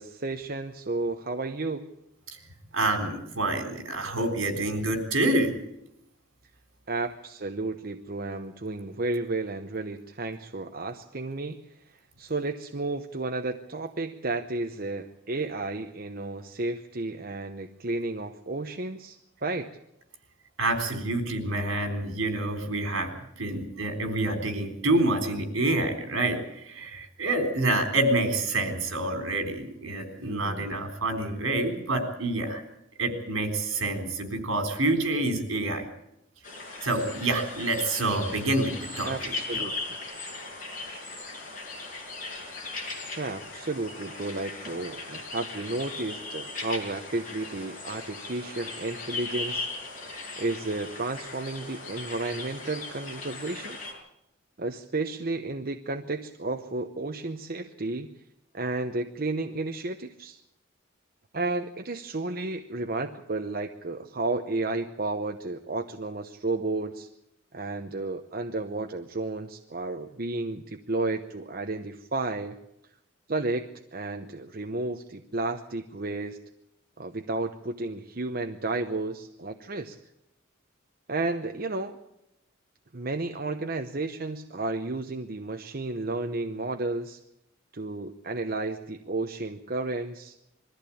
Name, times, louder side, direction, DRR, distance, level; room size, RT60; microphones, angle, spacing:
voice 1, 0.0-1.9 6.9-11.8 12.2-19.7 30.2-30.7 39.0-39.7 43.2-49.7 50.4-53.8 54.6-58.1 58.5-60.4 61.3-67.1 67.5-72.6 73.3-76.4 77.0-80.0 81.1-82.0 82.9-87.2 87.7-90.3, right 2 dB, 45° right, 5 dB, 0.9 m, -32 dB
voice 2, 2.7-5.5 20.6-32.6 33.0-35.8 36.8-39.6, right 2 dB, 75° right, 5 dB, 3.9 m, -27 dB
sound 1, 36.4-53.9, left 3 dB, 40° left, 5.6 m, -38 dB
21.5 x 14.5 x 8.6 m, 0.83 s
head